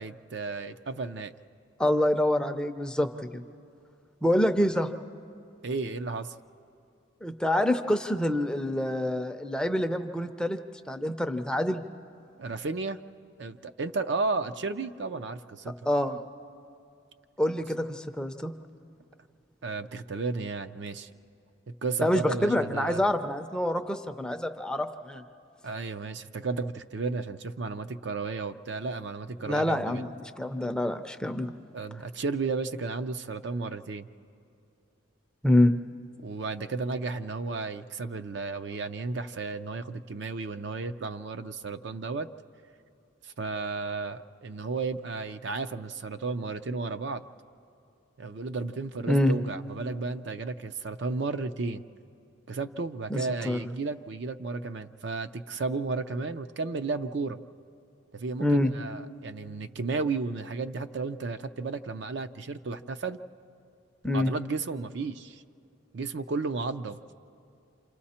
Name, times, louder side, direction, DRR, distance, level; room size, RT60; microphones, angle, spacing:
voice 1, 0.0-1.3 5.6-6.3 12.4-13.0 13.4-15.7 19.6-21.1 21.8-23.0 25.6-30.1 31.7-34.1 36.2-42.3 43.2-47.2 48.2-51.8 52.5-57.4 58.1-63.2 64.1-65.4 65.9-67.0, right 3 dB, 55° right, 9 dB, 0.5 m, -33 dB
voice 2, 1.8-3.4 4.2-4.9 7.2-10.6 10.9-11.8 15.9-16.2 17.4-18.5 22.0-25.2 29.4-31.5 35.4-35.7 49.1-49.3 53.1-53.7 58.4-58.7 64.0-64.3, left 1 dB, 5° left, 6 dB, 0.5 m, -26 dB
29.0 x 27.0 x 4.3 m, 2.6 s
head